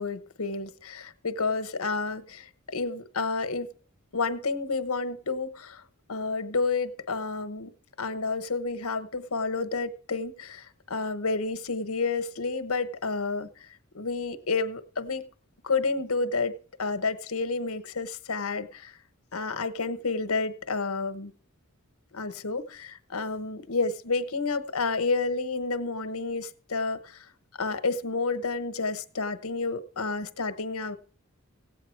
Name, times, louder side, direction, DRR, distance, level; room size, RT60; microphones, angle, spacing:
voice 1, 0.0-3.7 4.1-5.8 6.1-13.5 13.9-15.2 15.6-18.9 19.3-21.3 22.1-27.2 27.6-31.0, left 4 dB, 90° left, 11 dB, 1.2 m, -30 dB
16.5 x 8.9 x 4.6 m, 0.42 s
head